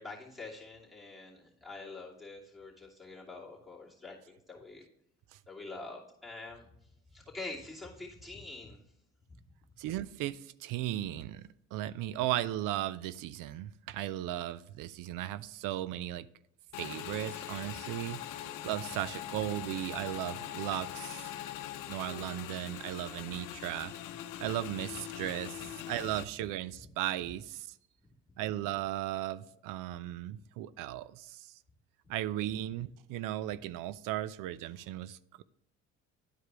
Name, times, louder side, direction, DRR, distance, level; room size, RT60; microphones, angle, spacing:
voice 1, 0.0-4.9 5.5-8.8, left 3 dB, ahead, 2.6 m, -46 dB
voice 2, 9.8-16.3 16.8-21.3 21.9-23.9 24.4-27.7 28.4-31.5 32.1-35.4, right 13 dB, 75° right, 0.5 m, -36 dB
Motorcycle / Engine, 16.7-26.2, left 12 dB, 70° left, 0.7 m, -42 dB
11.0 x 4.8 x 3.4 m
cardioid pair, 95°, 33 cm